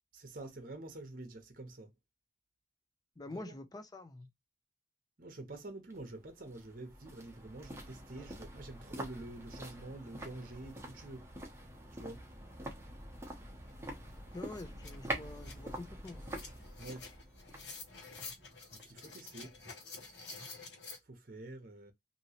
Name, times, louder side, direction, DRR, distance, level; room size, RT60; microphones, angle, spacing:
voice 1, 0.1-1.9 3.3-3.6 5.2-11.3 11.9-12.2 16.8-17.1 18.7-19.5 21.1-21.9, right 2 dB, 50° right, 0.8 m, -47 dB
voice 2, 3.2-4.3 14.3-16.2, left 2 dB, 20° left, 0.5 m, -46 dB
sound 1, 5.9-19.1 19.3-19.4, right 1 dB, 15° right, 0.8 m, -46 dB
sound 2, 13.7-13.8 14.1-21.0, left 4 dB, 70° left, 1.3 m, -50 dB
3.0 x 2.7 x 2.8 m
head